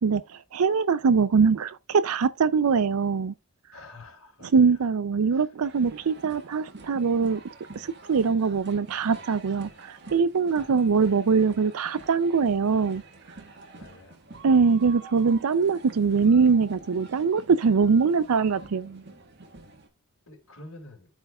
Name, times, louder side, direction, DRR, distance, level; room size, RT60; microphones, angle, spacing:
voice 1, 0.0-3.3 4.4-7.4 7.8-13.0 14.4-19.0, right 5 dB, 85° right, 0.5 m, -22 dB
voice 2, 3.7-4.5 5.3-5.5 13.7-14.2 20.3-21.1, left 2 dB, 70° left, 3.6 m, -47 dB
sound 1, 5.6-19.9, right 3 dB, 50° right, 1.5 m, -47 dB
13.0 x 4.6 x 2.4 m
head